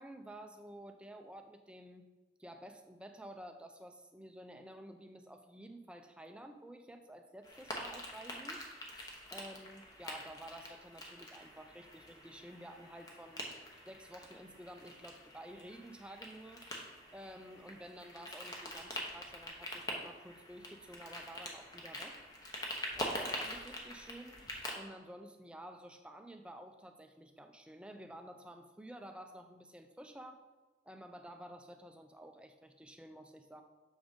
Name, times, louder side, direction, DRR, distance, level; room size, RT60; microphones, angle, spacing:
voice 1, 0.0-2.1 2.4-8.6 9.3-13.5 13.8-16.7 17.1-22.2 22.9-24.5 24.7-30.4 30.8-33.6, right 1 dB, 5° right, 6 dB, 0.4 m, -51 dB
sound 1, 7.4-24.7, left 1 dB, 20° left, 0.9 m, -45 dB
7.0 x 3.8 x 5.1 m, 1.2 s
head